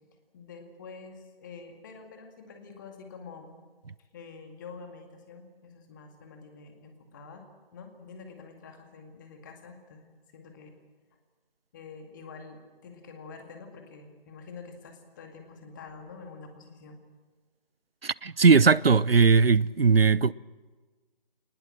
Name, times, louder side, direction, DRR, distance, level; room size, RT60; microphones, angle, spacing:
voice 1, 0.3-3.6 4.1-7.5 7.7-10.8 11.7-17.0, left 4 dB, 20° left, 2.2 m, -47 dB
voice 2, 18.0-20.3, right 5 dB, 85° right, 0.7 m, -19 dB
21.5 x 20.0 x 7.7 m
figure-of-eight pair, 155°, 29 cm